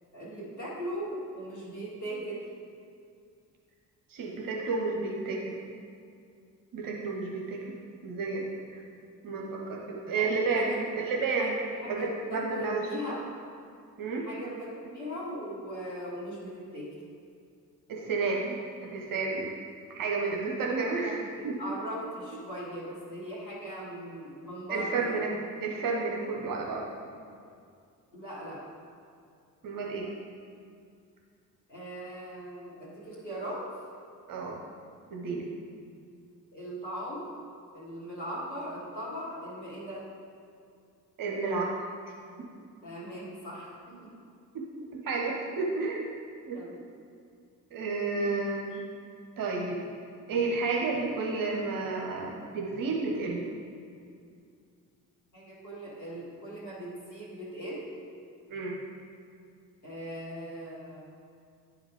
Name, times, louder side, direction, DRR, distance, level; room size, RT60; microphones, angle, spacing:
voice 1, 0.1-2.4 10.1-10.8 11.4-11.5 11.8-13.2 14.2-17.0 21.0-25.4 28.1-28.6 31.7-33.7 36.5-37.3 37.7-40.0 42.8-44.1 46.5-46.7 55.3-57.9 59.8-61.0, equal, 90° left, -10 dB, 1.4 m, -39 dB
voice 2, 4.1-5.6 6.7-7.6 8.0-8.4 8.7-8.8 9.2-11.6 11.9-12.8 14.0-14.3 17.9-18.5 18.8-19.5 19.9-21.1 21.4-21.6 24.7-25.3 25.6-26.8 29.6-30.1 34.3-34.6 35.1-35.5 41.2-41.8 44.5-44.6 45.0-46.1 46.5-46.6 47.7-48.8 49.4-49.8 50.3-53.4 58.5-58.8, right 4 dB, 40° right, -1 dB, 1.0 m, -31 dB
10.5 x 4.8 x 3.5 m, 2.3 s
figure-of-eight pair, 45°, 49 cm